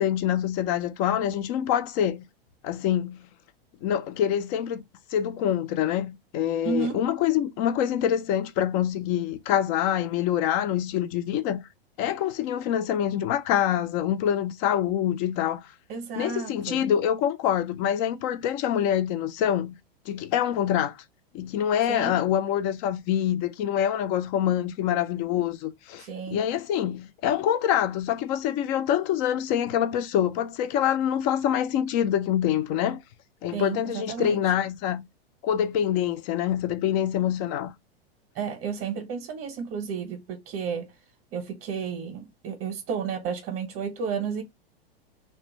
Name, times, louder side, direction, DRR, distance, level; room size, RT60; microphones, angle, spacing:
voice 1, 0.0-2.2 2.6-3.3 3.8-4.8 5.1-11.6 12.0-15.6 16.2-19.7 20.1-21.0 21.3-33.0 33.4-35.0 35.4-37.7, left 10 dB, 35° left, 0.4 m, -25 dB
voice 2, 6.6-7.0 15.9-16.8 21.9-22.1 26.0-26.4 33.5-34.4 38.3-40.9 41.3-44.4, right 6 dB, 35° right, 0.7 m, -32 dB
2.4 x 2.2 x 3.0 m
hypercardioid pair, 105°, 30 cm